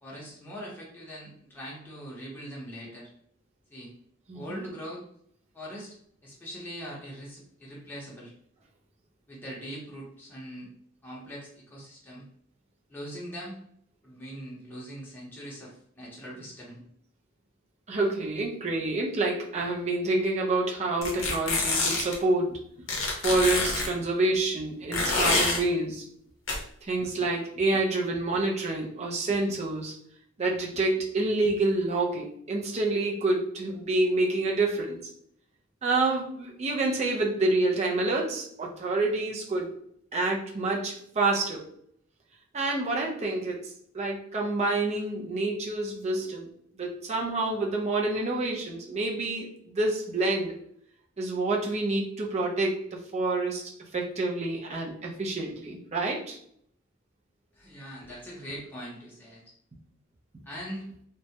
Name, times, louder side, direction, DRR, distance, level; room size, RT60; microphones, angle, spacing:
voice 1, 0.0-3.1 3.7-3.9 4.3-5.0 5.5-5.9 6.2-8.3 9.3-10.7 11.0-12.3 12.9-13.6 14.0-16.8 57.5-59.5 60.4-60.9, equal, 10° left, -6 dB, 0.6 m, -41 dB
voice 2, 4.3-4.6 17.9-22.6 23.2-26.0 26.8-29.9 30.4-35.0 35.8-39.7 40.1-41.6 42.5-43.6 43.9-46.5 46.8-50.6 51.2-53.6 53.9-56.4, right 2 dB, 35° right, -1 dB, 0.5 m, -28 dB
sound 1, 21.0-22.2 22.9-23.9 24.9-25.6 26.5-26.6, left 3 dB, 75° left, 0.6 m, -26 dB
2.2 x 2.0 x 2.7 m, 0.67 s
head